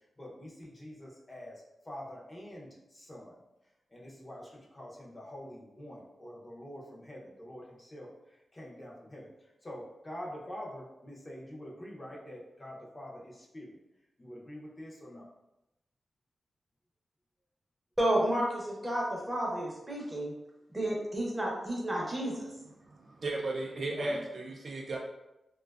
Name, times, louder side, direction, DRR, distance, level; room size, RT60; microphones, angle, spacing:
voice 1, 0.2-3.4 3.9-8.1 8.5-9.3 9.6-13.8 14.2-15.3 24.0-24.2, equal, 25° left, -3 dB, 0.5 m, -46 dB
voice 2, 18.0-20.3 20.7-22.4, right 1 dB, 15° right, -3 dB, 0.7 m, -31 dB
voice 3, 22.9-25.0, right 2 dB, 55° right, 0 dB, 0.3 m, -35 dB
2.5 x 2.2 x 2.3 m, 0.92 s
wide cardioid pair, 95°, 0 cm